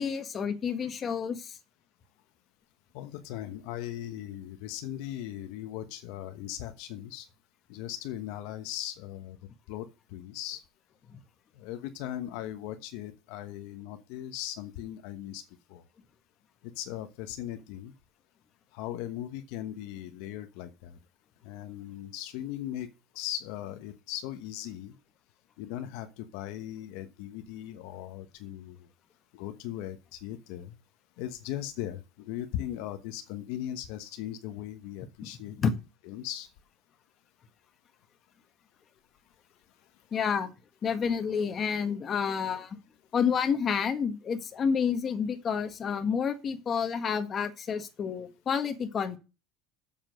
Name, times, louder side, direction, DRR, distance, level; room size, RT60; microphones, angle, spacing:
voice 1, 0.0-1.6 11.1-11.2 35.6-35.7 40.1-40.5 40.8-42.8 43.1-49.2, left 6 dB, 30° left, 7 dB, 1.5 m, -29 dB
voice 2, 2.9-7.3 7.7-9.4 9.7-10.6 11.5-15.4 15.7-15.8 16.6-17.9 18.7-21.0 21.4-22.9 23.1-24.9 25.6-28.9 29.3-30.7 31.2-35.5 36.1-36.5, left 12 dB, 75° left, 9 dB, 1.1 m, -38 dB
7.7 x 7.1 x 6.5 m, 0.29 s
cardioid pair, 140°, 0 cm